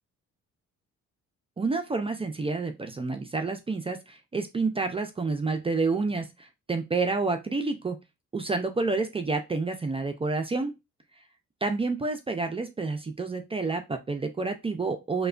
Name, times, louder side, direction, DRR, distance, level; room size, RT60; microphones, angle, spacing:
voice 1, 1.6-8.0 8.3-10.7 11.6-15.3, right 3 dB, 20° right, 6 dB, 0.4 m, -29 dB
3.2 x 2.2 x 2.4 m, 0.22 s
cardioid pair, 90°, 30 cm